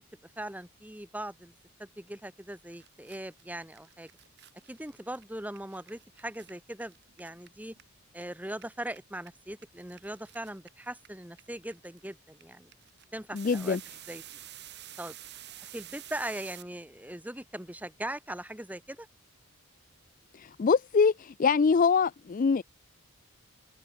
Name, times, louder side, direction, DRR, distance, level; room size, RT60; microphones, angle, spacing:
voice 1, 0.0-1.5 1.8-4.1 4.7-7.8 8.1-12.7 13.1-13.8 14.1-14.2 15.0-15.2 15.6-19.1, right 1 dB, 5° right, 1.5 m, -40 dB
sound 1, 2.4-2.5 2.7-8.2 8.5-16.6, right 13 dB, 50° right, 4.5 m, -49 dB
voice 2, 13.3-13.8 20.4-22.6, left 5 dB, 35° left, 0.3 m, -24 dB
head